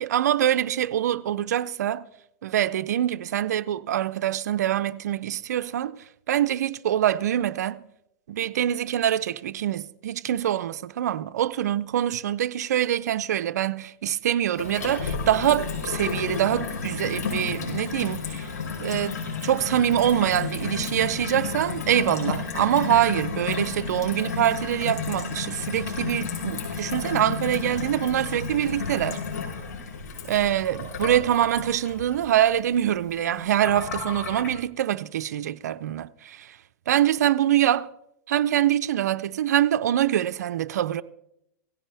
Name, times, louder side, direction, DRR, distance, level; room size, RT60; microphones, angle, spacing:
voice 1, 0.0-2.0 2.4-6.0 6.3-7.8 8.3-18.5 18.8-29.2 30.3-36.6 36.9-37.9 38.3-41.0, right 11 dB, 85° right, 0.6 m, -24 dB
Gurgling / Water tap faucet / Sink (filling or washing), 14.6-34.5, left 5 dB, 85° left, 5.3 m, -32 dB
17.5 x 15.0 x 3.4 m
hypercardioid pair, 125°, 9 cm